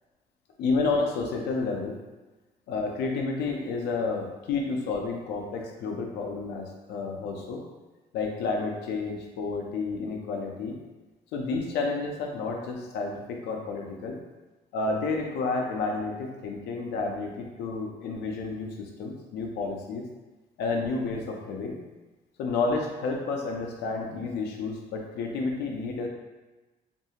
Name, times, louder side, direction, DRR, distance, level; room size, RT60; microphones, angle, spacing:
voice 1, 0.6-2.0 2.7-7.6 8.1-10.8 11.3-14.2 14.7-20.0 20.6-21.8 22.4-26.1, left 3 dB, 75° left, 1 dB, 0.5 m, -30 dB
2.6 x 2.3 x 2.8 m, 1.2 s
cardioid pair, 110°, 17 cm